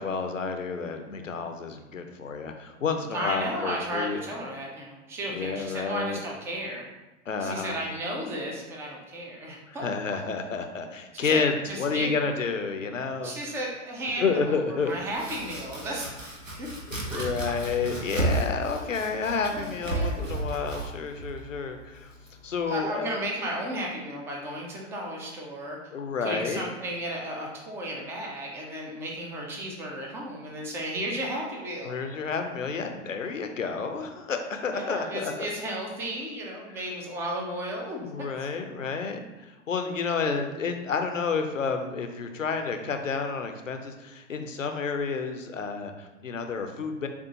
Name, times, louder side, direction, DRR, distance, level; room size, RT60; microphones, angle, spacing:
voice 1, 0.0-4.2 5.3-6.2 7.3-7.7 9.7-13.3 14.2-14.9 16.9-22.1 22.4-23.1 25.9-26.6 31.8-35.5 38.1-47.1, left 5 dB, 85° left, 6 dB, 0.6 m, -30 dB
voice 2, 3.1-6.9 7.4-10.2 11.1-12.1 13.2-16.1 16.6-16.7 17.1-17.3 18.7-18.8 19.5-20.3 22.7-25.8 26.2-31.9 34.7-38.5 40.2-40.4, right 1 dB, 5° right, -1 dB, 0.3 m, -34 dB
Domestic sounds home sounds, 14.9-22.6, right 2 dB, 90° right, 1.0 m, -33 dB
6.9 x 2.4 x 2.8 m, 1.1 s
figure-of-eight pair, 100°, 38 cm